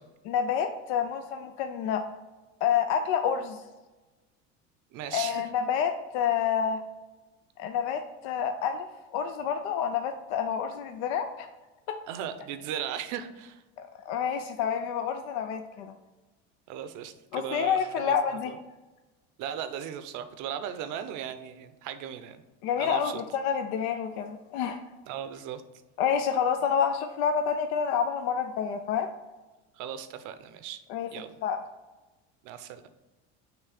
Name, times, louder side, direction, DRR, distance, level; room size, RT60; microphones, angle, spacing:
voice 1, 0.3-2.0 2.6-3.6 5.1-6.8 7.6-8.9 9.1-11.5 13.8-15.9 17.3-18.5 22.6-24.8 26.0-29.1 30.9-31.1 31.4-31.6, left 7 dB, 80° left, 7 dB, 0.5 m, -28 dB
voice 2, 4.9-5.4 12.1-13.6 16.7-18.6 19.4-22.4 22.8-23.2 25.1-25.6 29.8-30.8 31.1-31.3 32.4-32.9, right 9 dB, 65° right, 11 dB, 0.7 m, -37 dB
6.1 x 3.1 x 4.9 m, 1.1 s
supercardioid pair, 95°, 33 cm